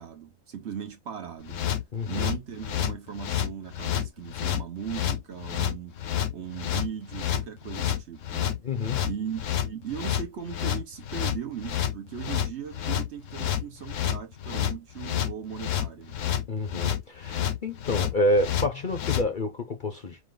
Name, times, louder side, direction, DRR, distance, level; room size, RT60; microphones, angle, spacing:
voice 1, 0.0-1.6 2.1-8.6 9.0-16.2, right 8 dB, 55° right, 1.1 m, -38 dB
sound 1, 1.5-19.3, left 10 dB, 65° left, 1.0 m, -29 dB
voice 2, 1.9-2.3 8.6-9.1 16.5-20.2, left 1 dB, 45° left, 0.8 m, -28 dB
5.0 x 2.1 x 3.8 m
omnidirectional pair, 1.5 m